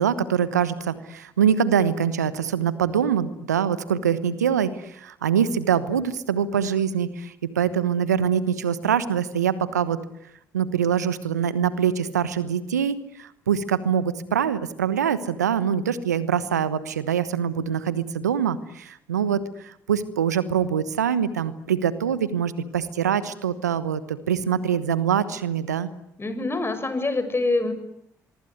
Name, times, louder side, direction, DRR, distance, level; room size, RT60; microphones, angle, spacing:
voice 1, 0.0-10.0 10.5-25.9, right 8 dB, 90° right, 16 dB, 1.1 m, -24 dB
voice 2, 26.2-27.7, left 2 dB, 25° left, 10 dB, 7.3 m, -25 dB
24.0 x 23.5 x 9.6 m, 0.76 s
hypercardioid pair, 45°, 9 cm